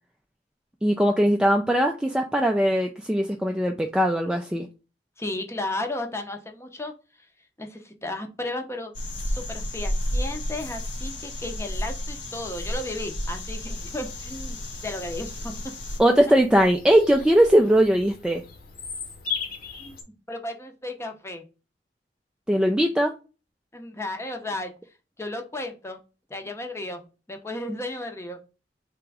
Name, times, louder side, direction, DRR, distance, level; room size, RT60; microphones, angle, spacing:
voice 1, 0.8-4.7 16.0-18.4 22.5-23.1, equal, 5° right, 3 dB, 0.3 m, -20 dB
voice 2, 5.2-6.9 7.6-8.9 9.3-15.6 19.8-21.4 23.7-24.7 25.2-26.0 26.3-28.4, left 2 dB, 15° left, 5 dB, 0.7 m, -34 dB
sound 1, 8.9-16.0, left 1 dB, 85° left, 1.3 m, -32 dB
Bird vocalization bird call bird song, 13.7-20.0, left 6 dB, 55° left, 1.1 m, -39 dB
3.4 x 3.0 x 4.8 m, 0.32 s
head